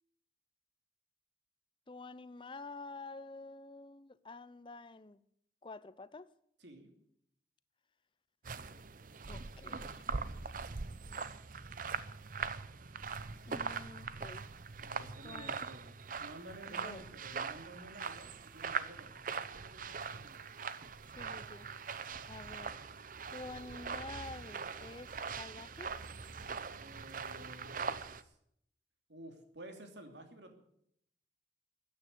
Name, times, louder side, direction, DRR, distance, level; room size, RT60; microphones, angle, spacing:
voice 1, 1.9-5.2 5.6-6.3 9.3-10.1 13.5-14.5 15.2-15.6 16.7-17.1 21.1-21.7 22.3-22.8 23.3-26.0, left 3 dB, 30° left, 0.6 m, -49 dB
sound 1, 8.4-28.2, right 5 dB, 50° right, 0.7 m, -42 dB
voice 2, 14.8-19.2 19.5-20.5 26.8-28.3 29.1-30.5, right 1 dB, 85° right, 2.9 m, -52 dB
14.5 x 9.6 x 9.4 m
head